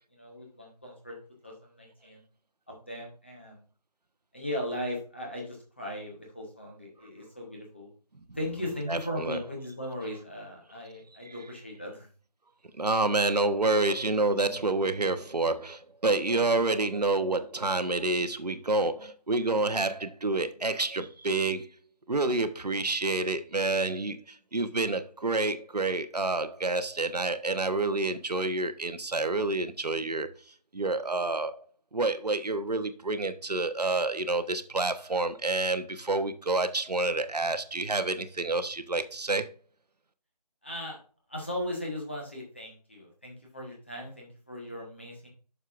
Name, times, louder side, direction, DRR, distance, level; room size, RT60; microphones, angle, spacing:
voice 1, 0.1-1.2 1.4-2.2 2.7-3.6 4.3-7.9 8.4-12.1 40.6-41.0 41.3-45.3, left 1 dB, 15° left, 1.2 m, -38 dB
voice 2, 8.9-9.4 11.3-11.4 12.8-21.7 22.1-30.3 30.7-31.7 31.9-39.5, right 2 dB, 70° right, 0.9 m, -28 dB
9.1 x 6.5 x 2.5 m
figure-of-eight pair, 180°, 21 cm